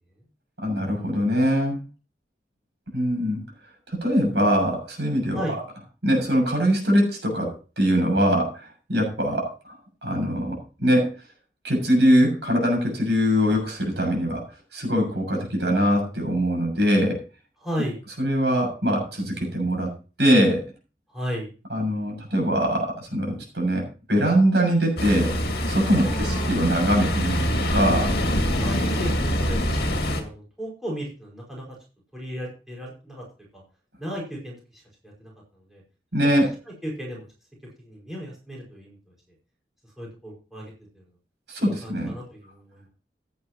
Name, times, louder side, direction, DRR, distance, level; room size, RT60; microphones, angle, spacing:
voice 1, 0.6-1.8 2.9-3.4 3.9-5.6 6.0-9.8 10.0-11.1 11.6-14.4 14.7-17.2 18.2-19.9 20.2-20.6 21.7-25.3 25.7-28.1 36.1-36.5 41.5-42.1, equal, 75° right, 2 dB, 6.8 m, -22 dB
voice 2, 17.6-18.0 21.1-21.5 26.0-26.6 28.6-31.8 32.1-33.2 33.5-33.6 34.0-35.3 35.7-35.8 36.4-37.3 37.8-39.1 40.0-41.1 41.6-42.9, equal, ahead, -4 dB, 5.3 m, -35 dB
Ocean, 25.0-30.2, equal, 60° left, 2.3 m, -25 dB
16.0 x 9.5 x 3.0 m, 0.34 s
head